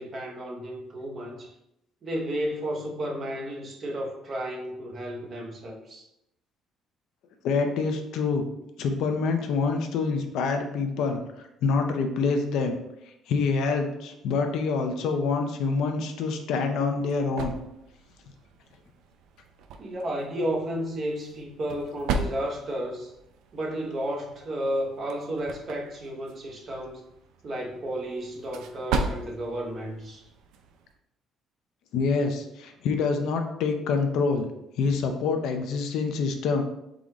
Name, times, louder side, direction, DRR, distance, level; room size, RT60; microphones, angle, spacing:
voice 1, 0.0-1.5 2.0-6.1 19.8-23.1 23.5-27.0 27.4-30.2, right 1 dB, 35° right, 0 dB, 0.8 m, -32 dB
voice 2, 7.4-8.4 8.8-12.8 13.3-17.6 31.9-34.5 34.8-36.6, left 4 dB, 70° left, 5 dB, 0.6 m, -26 dB
sound 1, 16.4-31.0, right 4 dB, 80° right, 0.4 m, -37 dB
3.8 x 3.8 x 3.0 m, 0.83 s
cardioid pair, 155°, 0 cm